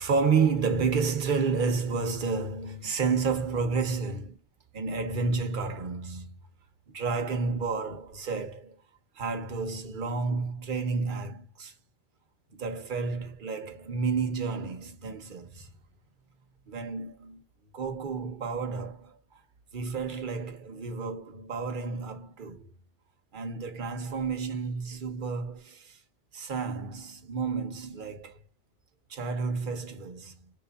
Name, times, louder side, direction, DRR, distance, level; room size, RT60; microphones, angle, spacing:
voice 1, 0.0-4.4 4.7-6.4 6.9-8.8 9.2-11.7 12.5-15.7 16.7-17.4 17.7-19.2 19.7-22.7 23.3-26.0 26.3-28.4 29.1-30.5, right 4 dB, 55° right, 0.9 m, -30 dB
5.0 x 3.2 x 2.2 m
omnidirectional pair, 1.1 m